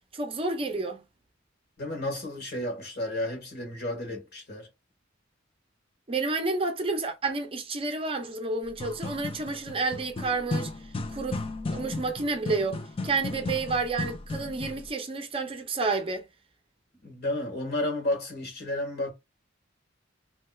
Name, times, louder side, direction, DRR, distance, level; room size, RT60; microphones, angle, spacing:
voice 1, 0.1-1.0 6.1-10.7 11.1-11.4 11.7-16.3, right 3 dB, 30° right, 0.6 m, -30 dB
voice 2, 1.8-4.7 17.0-19.1, left 1 dB, 55° left, 1.5 m, -32 dB
sound 1, 8.6-14.9, left 2 dB, 30° left, 0.4 m, -35 dB
3.3 x 2.8 x 2.3 m
head